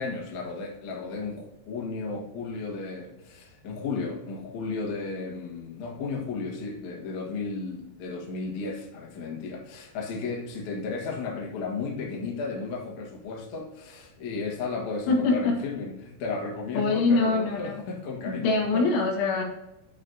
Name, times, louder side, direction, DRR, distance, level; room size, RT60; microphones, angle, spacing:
voice 1, 0.0-18.9, left 4 dB, 55° left, -1 dB, 2.3 m, -34 dB
voice 2, 15.1-15.6 16.7-17.8 18.3-19.4, left 3 dB, 85° left, 0 dB, 4.1 m, -24 dB
11.5 x 5.2 x 2.7 m, 0.93 s
omnidirectional pair, 5.4 m